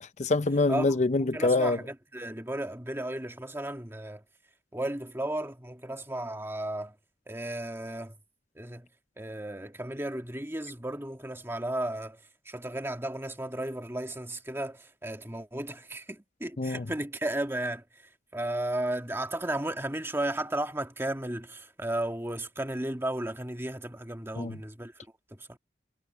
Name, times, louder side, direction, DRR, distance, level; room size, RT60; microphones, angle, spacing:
voice 1, 0.0-1.8 16.6-16.9 24.4-24.6, left 3 dB, 40° left, 0.6 m, -25 dB
voice 2, 0.7-4.2 4.7-7.0 7.3-8.2 8.6-8.9 9.2-25.6, right 1 dB, 15° right, 1.7 m, -34 dB
head